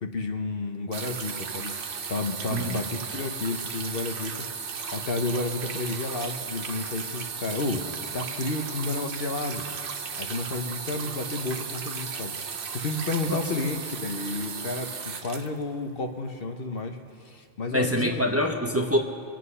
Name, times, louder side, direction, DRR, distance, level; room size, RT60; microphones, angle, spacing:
voice 1, 0.0-1.7 2.1-4.3 4.9-7.8 8.1-9.6 10.2-12.4 12.7-17.0 17.2-17.9, left 3 dB, 65° left, 6 dB, 1.2 m, -31 dB
sound 1, 0.9-16.3 17.2-17.3, right 6 dB, 60° right, 1.0 m, -35 dB
voice 2, 17.7-19.0, equal, 15° right, 1 dB, 1.0 m, -25 dB
24.5 x 9.1 x 5.6 m, 2.3 s
omnidirectional pair, 1.1 m